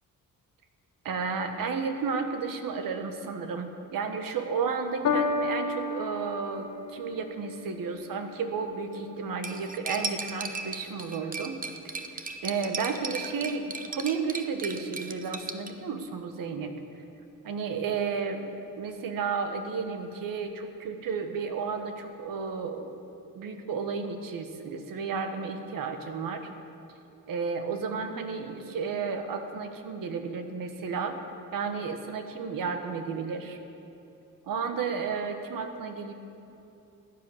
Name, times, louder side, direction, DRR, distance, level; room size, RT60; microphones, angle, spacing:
voice 1, 1.0-11.9 12.4-16.7 17.4-23.0 23.3-26.5 27.3-31.2 31.5-33.6 34.5-36.1, right 5 dB, 75° right, 7 dB, 1.4 m, -32 dB
Piano, 5.0-11.6 12.4-12.5, left 4 dB, 60° left, 1.1 m, -34 dB
Cutlery silverware, 9.4-15.7, right 4 dB, 25° right, 0.8 m, -37 dB
15.0 x 9.7 x 7.1 m, 2.8 s
cardioid pair, 120°, 34 cm